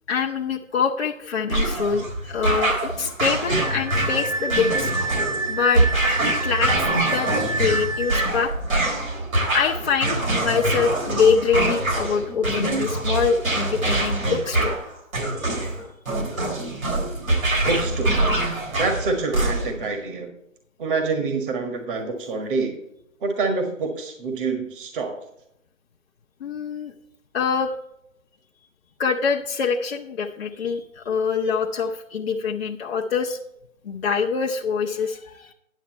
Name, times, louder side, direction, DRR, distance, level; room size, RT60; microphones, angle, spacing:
voice 1, 0.1-4.9 5.5-5.8 6.3-7.3 7.6-8.5 9.5-14.8 15.4-15.6 26.4-26.9 27.3-27.7 29.0-33.4 33.8-35.5, left 6 dB, 45° left, -2 dB, 0.8 m, -24 dB
sound 1, 1.5-19.9, right 2 dB, 80° right, 3.5 m, -24 dB
Wind instrument woodwind instrument, 3.6-8.3, right 2 dB, 20° right, 0.9 m, -28 dB
voice 2, 17.7-18.2 18.8-20.3 20.8-22.7 23.2-25.1, right 3 dB, 40° right, 4 dB, 1.6 m, -26 dB
10.0 x 7.4 x 4.2 m, 0.80 s
figure-of-eight pair, 140°, 40 cm